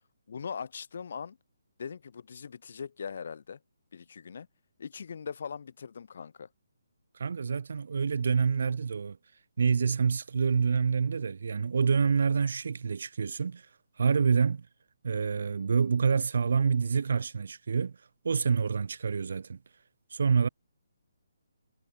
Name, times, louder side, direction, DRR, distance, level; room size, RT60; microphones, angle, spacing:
voice 1, 0.3-1.4 1.8-3.6 3.9-4.5 4.8-6.5, left 6 dB, 60° left, 2.8 m, -40 dB
voice 2, 7.2-9.2 9.6-13.6 14.0-14.7 15.0-17.9 18.2-19.6 20.1-20.5, right 5 dB, 65° right, 0.4 m, -27 dB
figure-of-eight pair, 145°, 0 cm